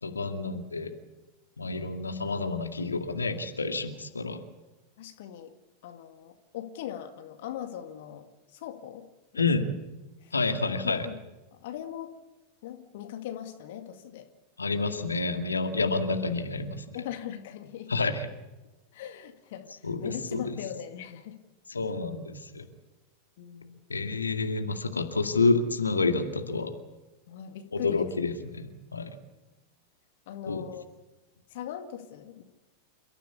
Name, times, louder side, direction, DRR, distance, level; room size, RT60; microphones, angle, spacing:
voice 1, 0.0-0.9 1.6-4.4 9.4-9.6 10.3-11.1 14.6-16.8 17.9-18.3 19.8-20.4 21.7-22.6 23.9-26.7 27.7-29.2 30.5-30.6, left 3 dB, 75° left, 6 dB, 2.1 m, -29 dB
voice 2, 5.0-5.5 5.8-9.1 9.3-9.5 10.2-10.6 11.0-11.2 11.5-12.2 12.6-14.3 16.9-17.9 18.9-21.4 23.4-23.8 27.3-28.1 30.3-30.8 31.5-32.4, left 10 dB, 55° left, 7 dB, 2.0 m, -40 dB
29.5 x 14.5 x 8.4 m, 1.1 s
figure-of-eight pair, 90°, 0 cm